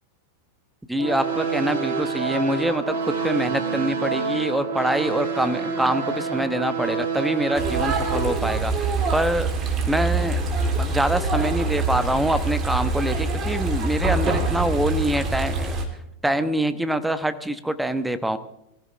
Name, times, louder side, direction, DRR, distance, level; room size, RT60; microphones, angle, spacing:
voice 1, 0.9-9.5 9.9-10.4 10.8-15.7 16.2-18.4, right 1 dB, 5° right, 12 dB, 1.2 m, -25 dB
sound 1, 1.0-8.3, right 5 dB, 55° right, 4.8 m, -27 dB
sound 2, 7.5-15.8, right 3 dB, 25° right, 3.3 m, -25 dB
24.0 x 15.0 x 3.5 m, 0.83 s
figure-of-eight pair, 90°, 0 cm